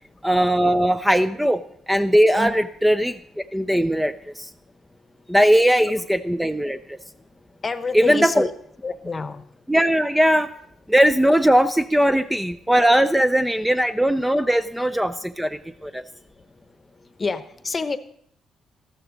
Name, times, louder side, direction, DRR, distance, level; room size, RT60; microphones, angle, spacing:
voice 1, 0.2-1.6 1.9-4.5 5.3-7.0 7.9-8.5 9.7-10.5 10.9-16.0, equal, 5° right, 10 dB, 0.4 m, -19 dB
voice 2, 7.6-8.5 8.8-9.4 17.2-18.0, left 4 dB, 30° left, 12 dB, 0.9 m, -27 dB
13.5 x 12.0 x 3.9 m, 0.68 s
cardioid pair, 90°, 0 cm